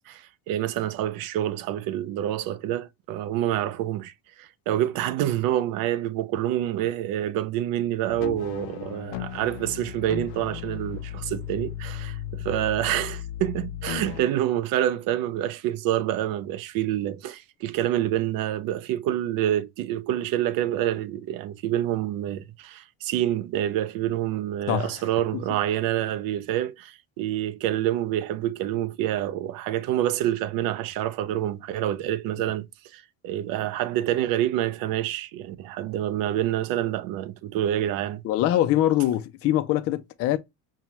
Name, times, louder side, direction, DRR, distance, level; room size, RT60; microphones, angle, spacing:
voice 1, 0.1-38.2, right 12 dB, 55° right, 0.6 m, -27 dB
sound 1, 8.1-14.2, left 11 dB, 85° left, 0.6 m, -35 dB
voice 2, 38.2-40.4, left 13 dB, 35° left, 0.4 m, -23 dB
5.6 x 2.2 x 3.0 m
cardioid pair, 160°, 41 cm